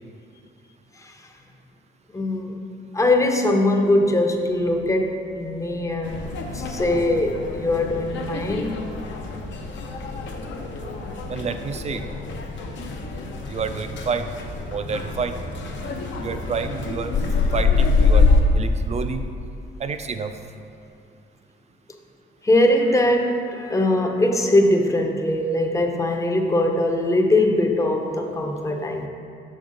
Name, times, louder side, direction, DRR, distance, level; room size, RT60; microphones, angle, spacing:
voice 1, 2.1-2.6 2.9-8.7 15.8-15.9 22.4-29.1, left 1 dB, 15° left, 3 dB, 0.6 m, -21 dB
sound 1, 6.0-18.4, left 4 dB, 70° left, 0.7 m, -25 dB
voice 2, 11.3-12.0 13.5-14.3 14.7-15.3 16.2-17.1 17.5-18.3 18.5-19.2 19.8-20.3, right 5 dB, 35° right, 8 dB, 0.4 m, -28 dB
6.0 x 5.3 x 3.8 m, 2.5 s
cardioid pair, 90°, 20 cm